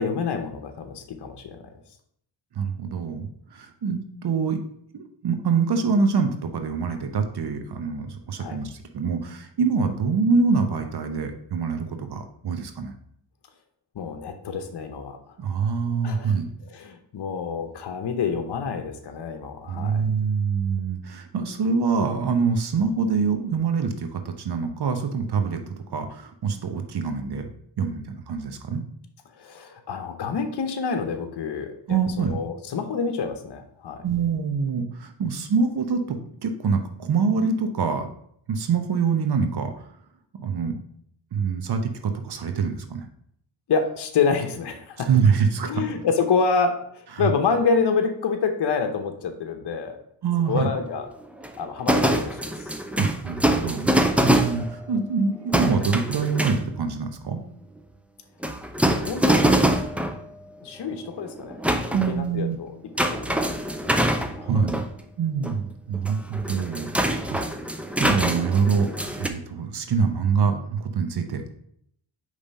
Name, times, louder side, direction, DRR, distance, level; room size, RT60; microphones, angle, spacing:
voice 1, 0.0-1.7 8.4-8.6 13.9-15.2 16.0-16.4 16.6-20.0 29.4-34.1 43.7-45.1 45.7-50.0 50.5-51.1 51.6-52.7 53.9-54.2 58.9-59.5 60.6-61.6 61.8-62.7 63.1-63.3 64.4-64.5, left 5 dB, 65° left, 6 dB, 0.9 m, -27 dB
voice 2, 2.5-4.6 4.9-12.9 15.4-16.5 19.7-27.5 27.8-28.8 31.9-32.4 34.0-38.1 38.5-39.9 40.3-40.8 41.3-43.1 45.1-45.7 47.2-47.3 50.2-50.7 53.0-53.9 54.2-57.4 61.9-62.6 64.4-64.8 65.2-67.4 68.0-68.9 69.2-71.5, right 5 dB, 60° right, 7 dB, 0.9 m, -25 dB
sound 1, 50.5-50.8 51.2-55.0 55.5-56.9 58.4-60.2 60.9-62.2 63.0-64.9 65.4-65.5 65.9-69.3, right 1 dB, 5° right, 0.5 m, -24 dB
5.3 x 3.3 x 5.4 m, 0.68 s
cardioid pair, 75°, 44 cm